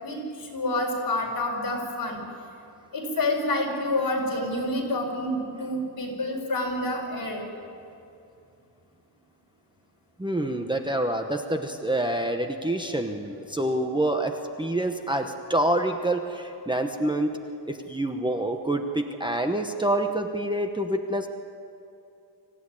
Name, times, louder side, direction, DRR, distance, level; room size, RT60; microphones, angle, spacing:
voice 1, 0.0-2.2 2.9-7.5, left 1 dB, 55° left, 0 dB, 5.3 m, -28 dB
voice 2, 10.2-17.3 17.6-21.3, right 1 dB, 10° right, 4 dB, 0.9 m, -27 dB
25.0 x 15.5 x 9.8 m, 2.6 s
wide cardioid pair, 165°, 40 cm